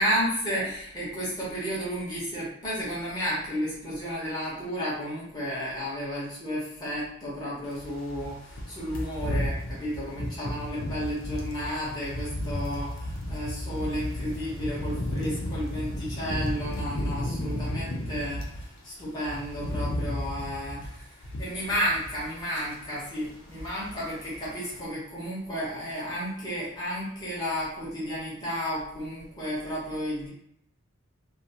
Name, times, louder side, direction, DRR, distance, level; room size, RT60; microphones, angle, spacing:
voice 1, 0.0-30.3, equal, 20° left, -8 dB, 0.7 m, -32 dB
sound 1, 7.7-18.7 19.0-22.4 22.7-22.9 23.3-24.1 24.3-24.5, left 1 dB, 70° left, 0.5 m, -33 dB
2.3 x 2.3 x 2.7 m, 0.72 s
head